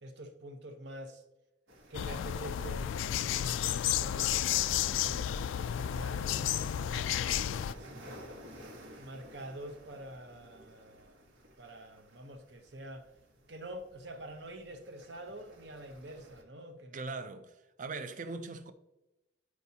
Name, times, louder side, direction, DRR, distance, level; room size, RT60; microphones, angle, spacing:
voice 1, 0.0-1.2 1.9-8.5 9.0-11.3 11.6-13.1 13.5-17.2, right 1 dB, 60° right, 1.0 m, -47 dB
sound 1, 1.7-16.4, equal, 80° right, 1.3 m, -55 dB
sound 2, 1.9-7.7, left 10 dB, 80° left, 0.3 m, -32 dB
voice 2, 16.9-18.7, right 3 dB, 40° right, 0.5 m, -40 dB
10.5 x 4.7 x 2.8 m
head